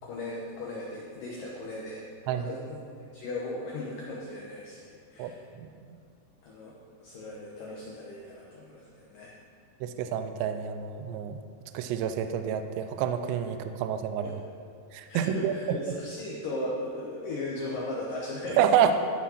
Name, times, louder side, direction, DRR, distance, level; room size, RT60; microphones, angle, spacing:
voice 1, 0.0-2.8 3.1-5.5 6.4-9.3 14.2-14.4 15.1-18.9, left 1 dB, 90° left, -3 dB, 1.9 m, -37 dB
voice 2, 5.6-6.0 9.8-11.4 11.7-14.4 14.9-15.8 18.6-18.9, right 8 dB, 85° right, 8 dB, 2.6 m, -28 dB
13.5 x 6.2 x 5.5 m, 2.3 s
omnidirectional pair, 5.4 m